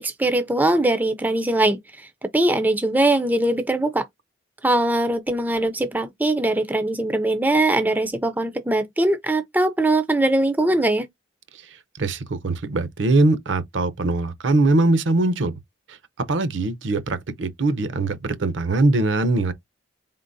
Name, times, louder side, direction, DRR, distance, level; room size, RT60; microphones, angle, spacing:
voice 1, 0.0-2.1 2.3-4.1 4.6-11.1, right 1 dB, 10° right, 0.3 m, -21 dB
voice 2, 11.9-15.5 16.2-19.5, right 2 dB, 70° right, 0.6 m, -21 dB
4.1 x 3.7 x 2.6 m
head